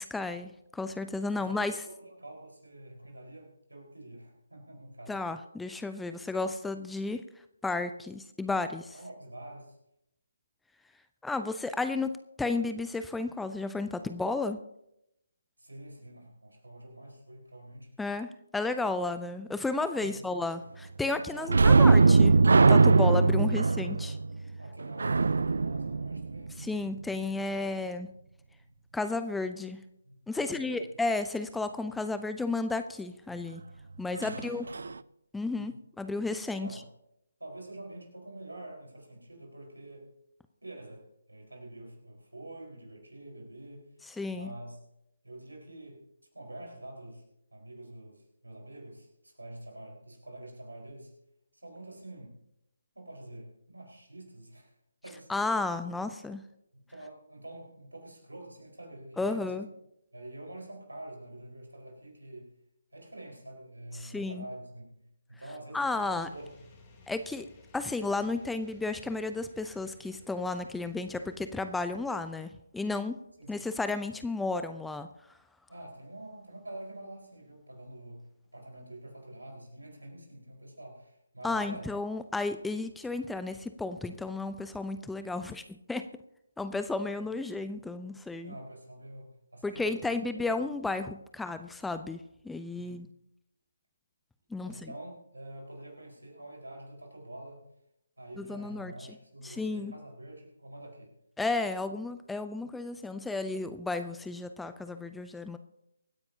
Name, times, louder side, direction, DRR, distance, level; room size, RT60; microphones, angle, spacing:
voice 1, 0.0-1.8 5.1-7.2 7.6-8.9 11.2-14.6 18.0-22.3 22.7-24.2 26.6-28.1 28.9-29.8 30.3-33.6 34.0-34.6 35.3-36.7 44.2-44.5 55.3-56.4 59.2-59.7 64.0-64.4 65.7-66.3 67.1-67.5 67.7-73.2 73.5-75.1 81.4-86.1 86.6-88.5 89.6-92.2 92.4-93.1 94.5-94.7 98.4-98.9 99.4-99.9 101.4-105.6, left 3 dB, 5° left, 10 dB, 0.4 m, -33 dB
voice 2, 1.3-5.2 8.9-9.8 15.6-17.9 20.0-20.2 21.3-22.2 23.4-23.5 24.6-26.5 28.6-28.7 30.0-30.9 34.0-34.9 35.5-35.7 36.6-36.9 37.4-40.1 40.6-43.9 44.3-44.8 45.2-46.0 46.3-47.2 47.5-51.1 51.5-52.4 52.9-54.8 55.0-55.3 55.8-55.9 56.7-59.7 60.1-62.5 62.9-65.0 65.3-66.6 73.4-73.7 75.7-81.9 88.4-90.5 92.7-93.0 94.6-97.6 98.2-101.1, right 1 dB, 85° right, 0 dB, 4.8 m, -46 dB
sound 1, 21.5-26.9 34.2-34.4 34.7-34.9, right 4 dB, 65° right, 0.4 m, -21 dB
sound 2, 65.9-72.0, left 2 dB, 20° left, 3.3 m, -57 dB
24.0 x 9.6 x 2.9 m, 0.83 s
figure-of-eight pair, 145°, 0 cm